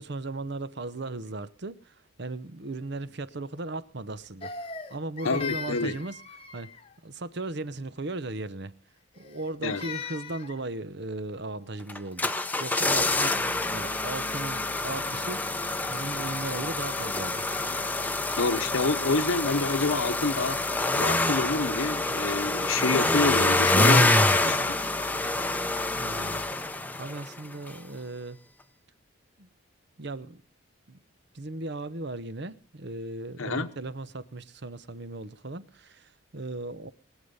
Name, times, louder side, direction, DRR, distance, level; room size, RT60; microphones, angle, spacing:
voice 1, 0.0-6.2 6.5-6.7 7.0-8.7 9.2-15.6 15.9-17.4 26.0-26.4 26.9-28.4 29.4-29.5 30.0-30.4 30.9-31.0 31.3-36.9, right 2 dB, 50° right, 0.8 m, -37 dB
Crying sobbing, 4.4-6.9 9.1-10.6, left 5 dB, 25° left, 1.1 m, -39 dB
voice 2, 5.2-5.9 9.6-9.8 18.4-20.6 20.9-24.8 33.4-33.7, left 3 dB, 75° left, 1.0 m, -28 dB
sound 1, 11.9-27.4 27.7-27.8, left 2 dB, 10° left, 0.6 m, -26 dB
22.5 x 8.2 x 5.5 m
head